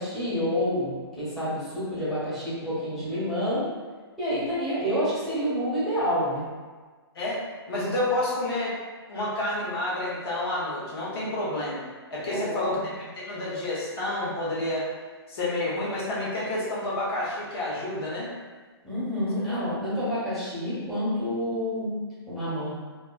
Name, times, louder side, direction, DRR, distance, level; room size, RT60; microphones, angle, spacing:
voice 1, 0.0-3.7 4.2-6.4 12.3-12.7 18.8-22.7, equal, ahead, -13 dB, 1.2 m, -28 dB
voice 2, 7.7-8.7 9.1-12.8 13.2-14.9 15.3-18.3 19.5-19.6, left 1 dB, 60° left, -7 dB, 1.1 m, -29 dB
3.4 x 2.4 x 2.4 m, 1.4 s
hypercardioid pair, 140°, 14 cm